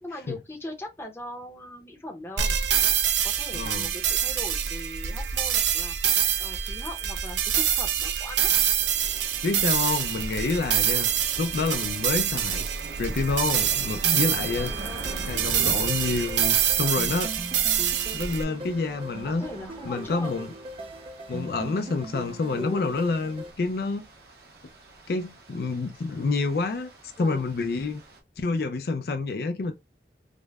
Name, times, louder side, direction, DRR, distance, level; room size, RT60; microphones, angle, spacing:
voice 1, 0.0-2.6 3.2-5.9 6.4-8.5 14.6-15.9 19.2-20.3 22.5-23.0 27.2-27.4, left 1 dB, 15° left, 0.6 m, -39 dB
sound 1, 2.4-18.4, right 9 dB, 85° right, 0.5 m, -26 dB
voice 2, 3.5-3.9 9.4-11.1 11.4-12.6 13.0-14.7 15.3-17.3 18.1-19.5 19.8-20.5 21.3-24.0 25.1-26.9 27.2-28.0 28.4-29.7, left 3 dB, 60° left, 0.4 m, -28 dB
sound 2, 8.8-28.2, right 2 dB, 65° right, 1.0 m, -45 dB
sound 3, 14.8-23.5, right 1 dB, 30° right, 0.4 m, -40 dB
5.1 x 2.1 x 2.3 m
head